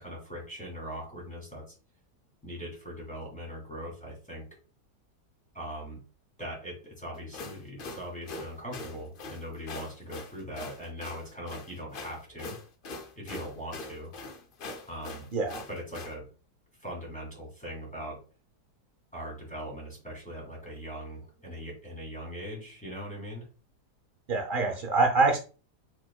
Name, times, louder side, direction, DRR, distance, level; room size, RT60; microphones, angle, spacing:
voice 1, 0.0-1.8 2.4-4.4 5.5-6.0 6.4-12.6 13.2-14.1 14.9-15.3 15.7-16.2 16.8-18.2 19.1-23.5, equal, 5° left, -3 dB, 2.3 m, -40 dB
sound 1, 7.1-16.1, left 3 dB, 80° left, 0.4 m, -42 dB
voice 2, 24.3-25.4, right 3 dB, 85° right, 3 dB, 0.4 m, -25 dB
4.5 x 4.5 x 2.2 m, 0.35 s
omnidirectional pair, 1.8 m